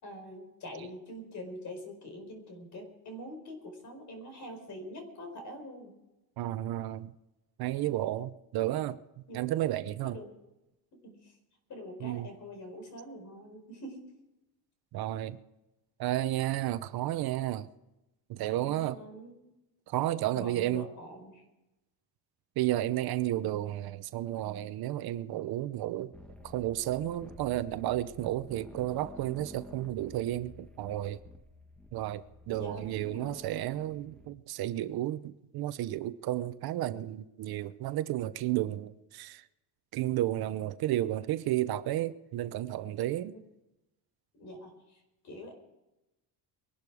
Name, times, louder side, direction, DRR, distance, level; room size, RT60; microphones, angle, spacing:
voice 1, 0.0-5.9 9.3-9.4 10.0-10.3 10.9-11.4 11.7-14.1 18.5-19.4 20.3-21.4 26.4-26.5 32.5-33.4 43.2-43.4 44.3-45.5, equal, 45° left, 4.8 m, -45 dB
voice 2, 6.4-7.1 7.6-9.0 9.3-10.2 12.0-12.3 14.9-15.4 16.0-17.7 18.3-19.0 19.9-20.9 22.6-26.1 26.4-31.2 31.9-39.4 39.9-43.4, right 14 dB, 65° right, 0.8 m, -32 dB
sound 1, 26.1-34.3, left 1 dB, ahead, 1.3 m, -51 dB
22.5 x 12.0 x 4.8 m
cardioid pair, 150°, 40 cm